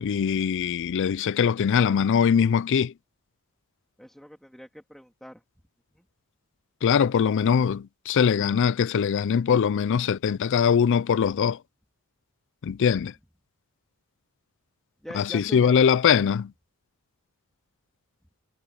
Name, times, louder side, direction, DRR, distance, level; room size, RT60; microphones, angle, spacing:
voice 1, 0.0-2.9 6.8-11.6 12.6-13.1 15.1-16.5, left 7 dB, 55° left, 0.4 m, -22 dB
voice 2, 4.0-5.4 6.0-6.1 15.0-15.7, equal, ahead, 2.1 m, -43 dB
head